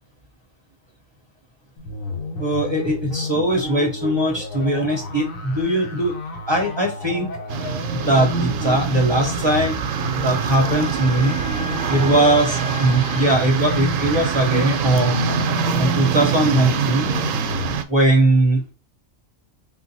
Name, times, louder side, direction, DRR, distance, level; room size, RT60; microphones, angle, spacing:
sound 1, 1.8-17.8, left 3 dB, 80° left, 1.5 m, -31 dB
voice 1, 2.4-6.1 6.5-7.3 7.9-9.8 10.2-11.4 11.9-15.3 15.8-17.1 17.9-18.7, right 1 dB, 25° right, 1 dB, 0.7 m, -20 dB
sound 2, 7.5-17.8, right 7 dB, 75° right, 0.9 m, -24 dB
Wind instrument woodwind instrument, 7.8-13.5, left 1 dB, 40° left, 0.8 m, -37 dB
3.8 x 2.6 x 4.1 m, 0.30 s
omnidirectional pair, 1.4 m